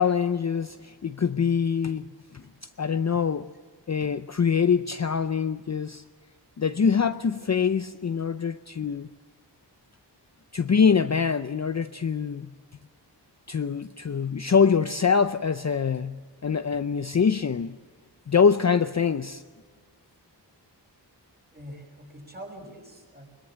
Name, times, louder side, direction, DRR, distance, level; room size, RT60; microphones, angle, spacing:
voice 1, 0.0-2.4 2.8-3.5 3.9-6.0 6.6-9.1 10.5-12.5 13.5-17.8 18.3-19.4, left 6 dB, 40° left, 0.6 m, -24 dB
voice 2, 21.5-23.3, equal, 20° right, 6.0 m, -44 dB
21.5 x 21.5 x 7.5 m
wide cardioid pair, 95°, 43 cm